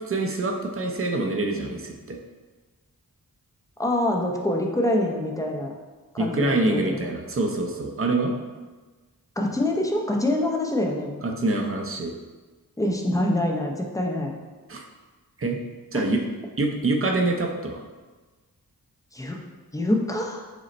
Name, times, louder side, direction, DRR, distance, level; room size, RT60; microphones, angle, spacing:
voice 1, 0.1-2.2 6.2-8.4 11.2-12.1 14.7-14.8 15.4-15.6 15.9-16.2 16.6-17.8, right 2 dB, 35° right, 2 dB, 0.6 m, -25 dB
voice 2, 3.8-5.7 6.1-7.1 9.4-11.1 12.8-14.3 15.9-16.1 19.1-19.4 19.7-20.4, left 1 dB, 10° left, 1 dB, 0.5 m, -25 dB
5.0 x 2.1 x 4.2 m, 1.3 s
wide cardioid pair, 70°, 37 cm